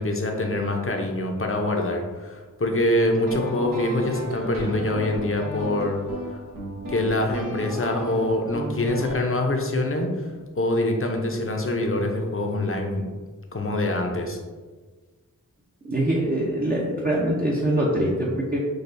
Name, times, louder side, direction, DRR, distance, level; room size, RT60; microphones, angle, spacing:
voice 1, 0.0-6.0 6.9-10.3 10.6-13.0 13.5-14.4, left 1 dB, 40° left, 2 dB, 0.7 m, -25 dB
sound 1, 3.0-9.2, equal, 80° right, 0.9 m, -34 dB
voice 2, 15.8-18.6, right 1 dB, 30° right, -5 dB, 0.7 m, -23 dB
6.3 x 2.3 x 2.6 m, 1.4 s
wide cardioid pair, 50°, 33 cm